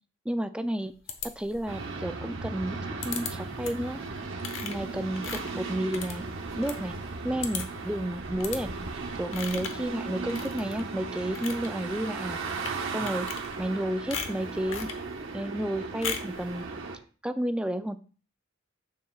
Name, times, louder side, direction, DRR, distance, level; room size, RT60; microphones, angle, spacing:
voice 1, 0.3-0.9 1.2-2.8 3.0-4.0 4.6-6.2 6.6-6.9 7.2-8.7 9.2-12.4 12.9-13.3 13.6-14.9 15.3-16.6 17.2-18.0, right 1 dB, 5° right, 10 dB, 0.3 m, -31 dB
sound 1, 1.1-1.8 3.0-3.3 3.6-3.9 4.4-6.8 7.1-7.2 7.4-7.9 8.4-8.6 9.3-9.9 10.3-10.8 11.2-11.7 12.5-12.8 13.1-13.8 14.1-15.0 16.0-16.4, left 6 dB, 70° left, 0.9 m, -37 dB
sound 2, 1.7-17.0, right 3 dB, 75° right, 1.2 m, -36 dB
7.6 x 6.7 x 2.3 m, 0.38 s
head